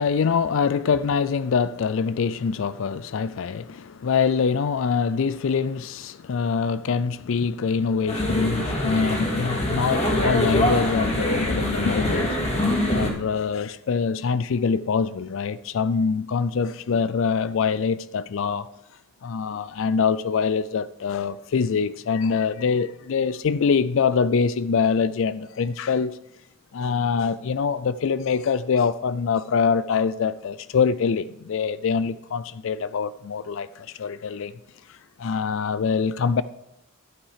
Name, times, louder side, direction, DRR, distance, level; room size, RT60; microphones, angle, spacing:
voice 1, 0.0-12.4 12.8-18.7 19.2-26.2 26.7-34.5 34.9-36.4, left 5 dB, 60° left, 0.4 m, -24 dB
sound 1, 8.1-13.1, left 1 dB, 30° left, 2.1 m, -24 dB
12.0 x 8.7 x 4.9 m
head